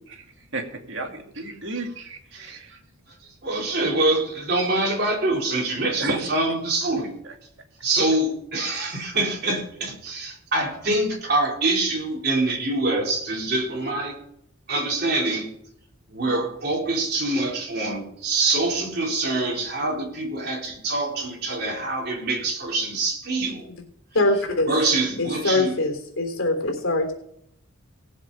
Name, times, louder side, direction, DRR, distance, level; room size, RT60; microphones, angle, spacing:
voice 1, 0.1-2.8 6.0-6.2 7.2-7.3, right 2 dB, 70° right, 3 dB, 2.3 m, -33 dB
voice 2, 3.1-7.1 7.8-14.2 14.7-15.5 16.1-23.7 24.7-25.8, right 2 dB, 50° right, -1 dB, 4.1 m, -25 dB
voice 3, 24.1-24.7 25.2-27.1, left 2 dB, 80° left, 4 dB, 3.5 m, -23 dB
18.5 x 7.9 x 5.5 m, 0.70 s
head